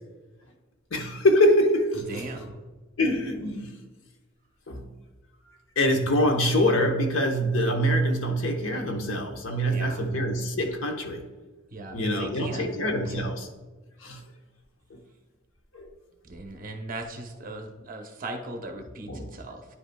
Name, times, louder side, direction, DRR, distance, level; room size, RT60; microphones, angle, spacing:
voice 1, 0.9-2.5 3.0-3.7 4.7-4.9 5.8-11.2 11.9-13.5 14.0-14.2 14.9-15.0 15.7-15.9 19.1-19.3, equal, 70° left, 4 dB, 0.9 m, -24 dB
voice 2, 2.1-2.6 9.6-10.1 11.7-13.2 16.2-19.6, right 2 dB, 45° right, 3 dB, 0.8 m, -38 dB
10.0 x 5.2 x 2.2 m, 1.3 s
head